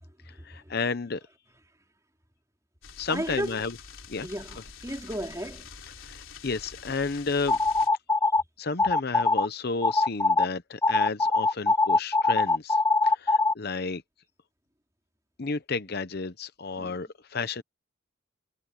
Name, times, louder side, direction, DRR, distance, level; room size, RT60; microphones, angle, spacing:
voice 1, 0.3-1.2 3.0-3.8 4.1-4.3 6.0-7.6 8.6-14.0 15.4-17.6, left 4 dB, 50° left, 0.8 m, -32 dB
sound 1, 2.8-7.9, left 6 dB, 80° left, 3.4 m, -46 dB
voice 2, 3.1-3.6 4.2-4.6 4.8-5.7 16.8-17.0, equal, 15° right, 4.0 m, -33 dB
sound 2, 7.5-8.4 8.8-9.5 9.8-10.5 10.8-13.5, left 3 dB, 15° left, 0.3 m, -22 dB
head